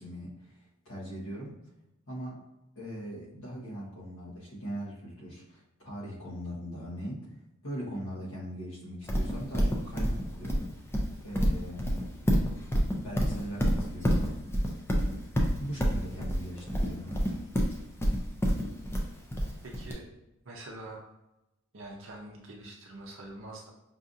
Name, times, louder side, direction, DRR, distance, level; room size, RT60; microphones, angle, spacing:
voice 1, 0.0-1.6 2.1-2.4 2.7-7.3 7.6-10.9 11.2-12.0 13.0-14.3 15.6-17.4, equal, 65° left, -5 dB, 1.2 m, -40 dB
Livestock farm animals working animals, 9.1-19.9, equal, 10° left, 0.4 m, -27 dB
voice 2, 19.6-20.1 20.5-21.1 21.7-23.7, right 2 dB, 60° right, -2 dB, 0.6 m, -44 dB
5.4 x 2.7 x 2.5 m, 0.92 s
head